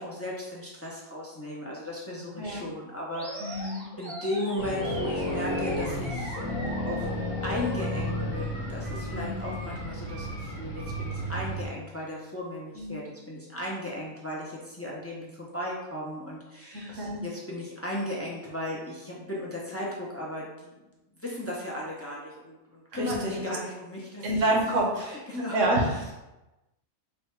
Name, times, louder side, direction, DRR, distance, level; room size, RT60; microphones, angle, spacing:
voice 1, 0.0-6.4 6.8-7.1 7.4-20.8 21.2-24.5 25.0-25.6 25.9-26.1, left 1 dB, 20° left, -5 dB, 0.4 m, -36 dB
Animal, 3.1-11.3, right 1 dB, 30° right, 0.8 m, -41 dB
voice 2, 3.4-3.8 9.1-9.5 12.8-13.0 16.7-17.2 22.9-23.4 24.2-25.1 25.3-25.9, right 1 dB, 65° right, -1 dB, 1.2 m, -28 dB
sound 1, 4.6-11.6, left 1 dB, 65° left, 1.1 m, -32 dB
4.0 x 2.3 x 4.3 m, 1.0 s
omnidirectional pair, 1.5 m